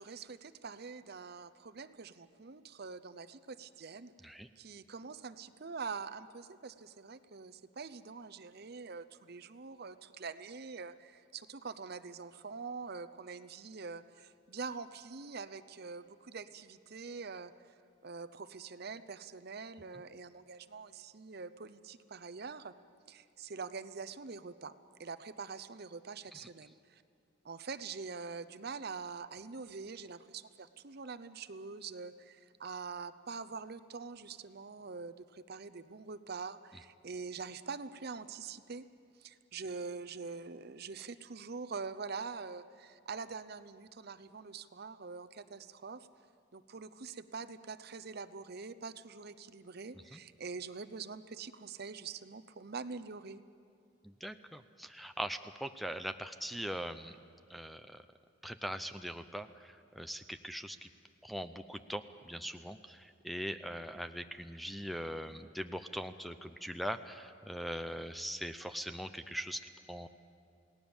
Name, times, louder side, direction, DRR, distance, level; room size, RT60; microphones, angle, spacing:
voice 1, 0.0-4.1 4.6-17.5 18.0-22.7 23.1-24.7 25.0-27.0 27.4-38.8 39.2-46.1 46.5-53.4, right 4 dB, 55° right, 11 dB, 0.7 m, -44 dB
voice 2, 54.0-57.2 57.5-58.0 58.4-60.9 61.2-69.6 69.9-70.1, equal, ahead, 10 dB, 0.6 m, -41 dB
29.0 x 18.0 x 7.2 m, 2.5 s
head